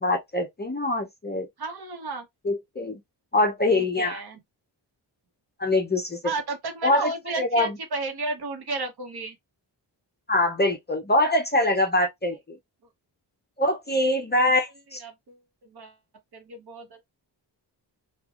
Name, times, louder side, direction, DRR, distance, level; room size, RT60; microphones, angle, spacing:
voice 1, 0.0-1.5 2.4-3.0 3.3-4.2 5.6-6.2 6.8-7.8 10.3-12.6 13.6-15.0, left 1 dB, 25° left, 0.5 m, -24 dB
voice 2, 1.6-2.3 3.7-4.4 6.2-9.4 14.4-14.5 15.0-15.4 15.6-15.9 16.3-17.0, right 3 dB, 60° right, 1.0 m, -33 dB
3.2 x 2.3 x 2.3 m
wide cardioid pair, 140°, 44 cm